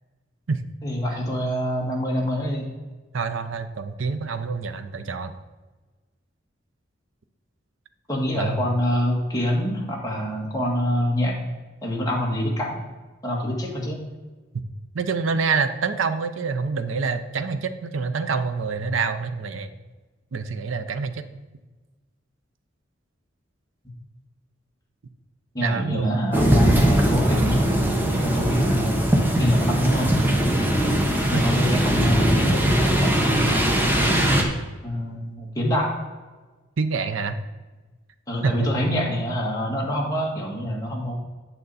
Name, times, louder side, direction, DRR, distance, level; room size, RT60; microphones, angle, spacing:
voice 1, 0.8-2.7 8.1-11.4 11.8-12.8 13.2-14.0 25.5-29.0 29.4-30.1 31.3-33.7 34.8-35.9 38.3-41.1, equal, 20° left, -2 dB, 1.8 m, -25 dB
voice 2, 3.1-5.3 8.3-8.6 14.9-19.7 20.3-21.3 25.6-26.2 31.3-31.4 36.8-37.4 38.4-38.8, right 4 dB, 85° right, 9 dB, 0.6 m, -26 dB
sound 1, 26.3-34.4, right 1 dB, 10° right, 1.0 m, -20 dB
9.1 x 6.6 x 4.1 m, 1.3 s
head